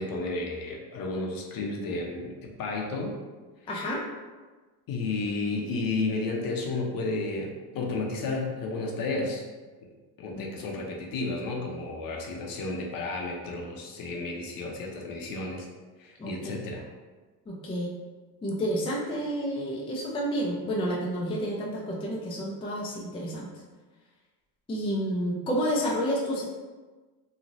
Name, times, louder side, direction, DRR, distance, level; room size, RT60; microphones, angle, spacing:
voice 1, 0.0-3.1 4.9-9.4 10.2-15.7 16.0-16.8, left 3 dB, 50° left, 0 dB, 0.7 m, -32 dB
voice 2, 3.7-4.0 10.3-10.5 16.2-16.5 17.5-17.9 18.4-23.5 24.7-26.4, equal, 15° left, -3 dB, 0.4 m, -30 dB
3.1 x 2.4 x 2.6 m, 1.3 s
supercardioid pair, 95°, 44 cm